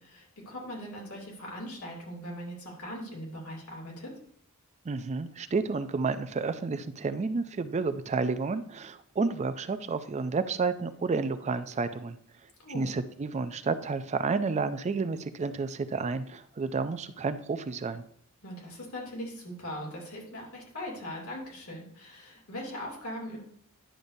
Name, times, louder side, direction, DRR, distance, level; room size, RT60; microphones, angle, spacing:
voice 1, 0.0-4.1 12.6-12.9 18.4-23.4, equal, 90° left, -3 dB, 2.7 m, -40 dB
voice 2, 4.9-12.2 12.7-18.0, right 4 dB, 30° right, 12 dB, 0.4 m, -31 dB
10.0 x 6.6 x 2.7 m, 0.64 s
head